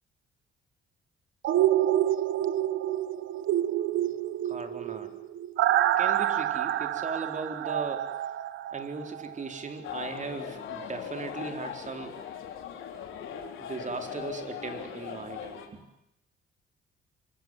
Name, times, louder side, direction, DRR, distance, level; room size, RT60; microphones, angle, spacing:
sound 1, 1.4-9.3 9.7-9.8, right 12 dB, 80° right, 1.2 m, -27 dB
voice 1, 4.4-5.1 6.0-8.2 8.7-12.2 13.6-15.8, right 4 dB, 40° right, 6 dB, 4.2 m, -38 dB
sound 2, 9.8-15.7, left 8 dB, 85° left, 3.8 m, -39 dB
25.5 x 25.0 x 8.0 m, 0.86 s
cardioid pair, 90°, 20 cm